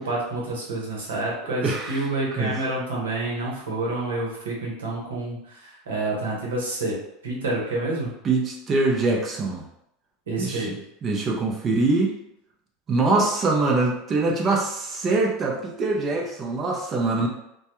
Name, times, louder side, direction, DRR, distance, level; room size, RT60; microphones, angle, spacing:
voice 1, 0.0-7.0 7.2-8.1 10.3-10.8, right 2 dB, 90° right, -3 dB, 0.9 m, -28 dB
voice 2, 1.5-2.1 2.4-2.5 8.2-9.6 10.4-10.7 11.0-12.1 12.9-17.3, right 3 dB, 35° right, 0 dB, 0.6 m, -23 dB
2.2 x 2.1 x 2.9 m, 0.80 s
hypercardioid pair, 100°, 0 cm